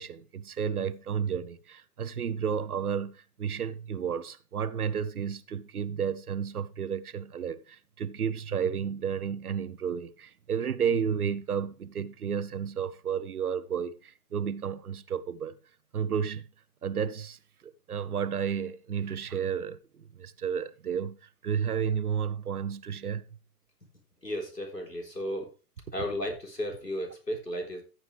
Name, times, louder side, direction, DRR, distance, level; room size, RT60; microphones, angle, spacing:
voice 1, 0.0-15.6 15.9-16.5 16.8-21.2 21.4-23.2, right 7 dB, 65° right, 0.9 m, -32 dB
voice 2, 24.2-25.5 25.9-27.8, equal, 90° left, 4.1 m, -34 dB
14.5 x 7.6 x 3.3 m
figure-of-eight pair, 115°, 47 cm